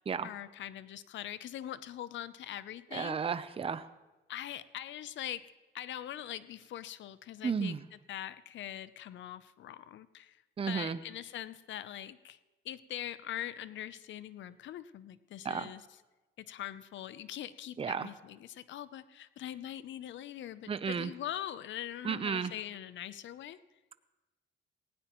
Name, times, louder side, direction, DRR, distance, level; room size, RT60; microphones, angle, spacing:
voice 1, 0.2-3.2 4.3-5.4 5.7-7.7 8.1-12.4 12.6-15.9 16.4-23.6, left 11 dB, 70° left, 15 dB, 0.6 m, -42 dB
voice 2, 2.9-3.9 7.4-7.8 10.6-11.0 15.4-15.7 17.8-18.1 20.7-21.1 22.0-22.5, right 6 dB, 30° right, 13 dB, 0.6 m, -33 dB
18.5 x 16.5 x 3.1 m, 1.1 s
cardioid pair, 90°, 20 cm